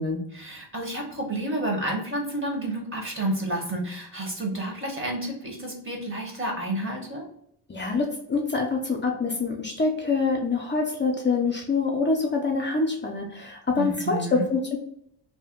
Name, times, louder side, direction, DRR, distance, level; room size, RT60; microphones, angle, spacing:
voice 1, 0.3-7.3 13.8-14.5, right 1 dB, 30° right, 1 dB, 1.1 m, -30 dB
voice 2, 7.7-14.8, left 4 dB, 30° left, 0 dB, 0.5 m, -25 dB
2.7 x 2.1 x 3.6 m, 0.69 s
cardioid pair, 90°, 39 cm